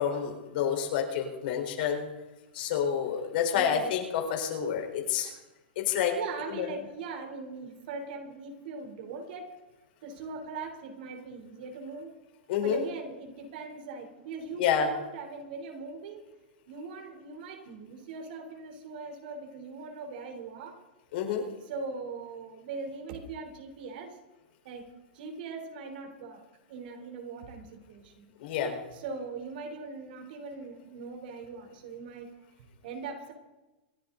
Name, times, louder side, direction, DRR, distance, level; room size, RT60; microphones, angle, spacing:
voice 1, 0.0-2.1 2.5-5.3 5.8-6.1 6.5-6.7 12.5-12.8 14.6-14.9 21.1-21.5 28.4-28.8, left 8 dB, 60° left, 2 dB, 4.4 m, -28 dB
voice 2, 3.6-3.9 6.2-9.6 10.0-12.1 12.6-16.2 16.7-20.8 21.7-24.2 24.6-28.3 28.9-32.3 32.6-33.3, right 4 dB, 60° right, 5 dB, 3.6 m, -40 dB
26.5 x 10.5 x 4.0 m, 1.1 s
hypercardioid pair, 140°, 6 cm